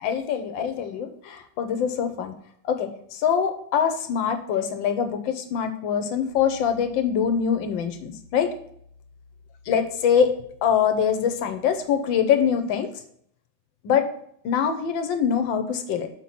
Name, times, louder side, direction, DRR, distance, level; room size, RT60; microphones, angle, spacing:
voice 1, 0.0-2.4 2.6-8.5 9.7-10.3 10.6-12.9 13.8-14.1 14.4-16.1, left 7 dB, 75° left, 7 dB, 1.5 m, -24 dB
Piano, 6.3-11.9, left 4 dB, 45° right, 3.4 m, -52 dB
5.9 x 4.5 x 5.6 m, 0.67 s
omnidirectional pair, 2.1 m